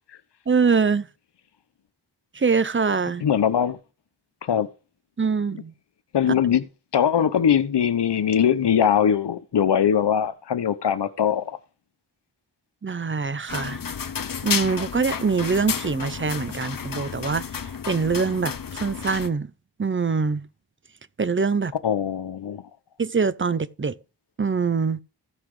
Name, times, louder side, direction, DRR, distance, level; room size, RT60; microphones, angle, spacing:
voice 1, 0.5-1.1 2.3-3.2 5.2-5.7 12.8-13.8 14.4-17.4 17.9-19.5 19.8-20.4 21.2-21.7 23.0-24.0 24.4-25.0, right 5 dB, 30° right, 0.7 m, -23 dB
voice 2, 3.2-3.8 4.4-4.7 6.1-6.6 6.9-11.6 21.8-22.6, left 8 dB, 85° left, 1.0 m, -21 dB
sound 1, 13.5-19.3, left 7 dB, 55° left, 1.1 m, -31 dB
15.0 x 5.9 x 4.9 m
wide cardioid pair, 95°, 40 cm